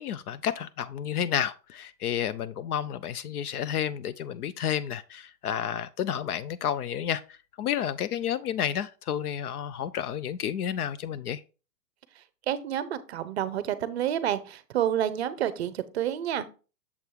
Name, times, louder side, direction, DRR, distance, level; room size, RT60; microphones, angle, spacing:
voice 1, 0.0-11.4, left 9 dB, 65° left, 0.5 m, -31 dB
voice 2, 12.5-16.5, right 10 dB, 40° right, 0.6 m, -29 dB
7.0 x 3.4 x 4.5 m
hypercardioid pair, 150°, 49 cm